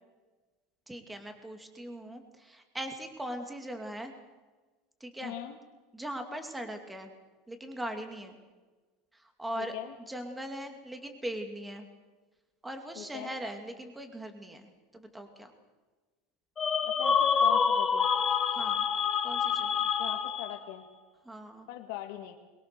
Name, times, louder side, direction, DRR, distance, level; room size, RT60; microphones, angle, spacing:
voice 1, 0.9-4.1 5.0-5.3 5.9-7.1 7.5-8.4 9.1-9.7 10.1-11.9 12.6-15.5 18.5-18.9 19.2-19.9 21.2-21.7, right 1 dB, 5° right, 5 dB, 2.3 m, -40 dB
voice 2, 5.2-5.6 9.6-9.9 13.0-13.4 16.8-18.1 20.0-20.8 21.7-22.4, left 13 dB, 70° left, 4 dB, 2.0 m, -41 dB
sound 1, 16.6-20.7, left 6 dB, 20° left, 1.8 m, -27 dB
23.0 x 22.0 x 6.8 m, 1.3 s
supercardioid pair, 150°, 0 cm